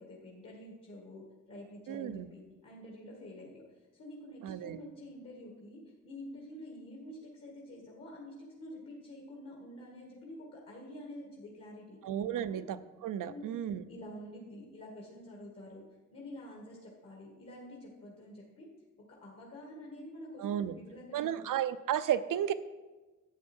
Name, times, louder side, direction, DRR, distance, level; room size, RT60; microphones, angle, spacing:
voice 1, 0.0-3.6 3.9-12.0 12.3-12.5 13.2-13.6 13.9-15.8 16.1-18.7 19.2-21.3, left 1 dB, 50° left, -3 dB, 2.0 m, -48 dB
voice 2, 1.9-2.3 4.4-4.8 12.0-12.8 13.0-13.8 20.4-20.7 21.1-22.5, right 10 dB, 90° right, 13 dB, 0.6 m, -33 dB
12.0 x 8.4 x 4.5 m, 1.2 s
wide cardioid pair, 160°, 31 cm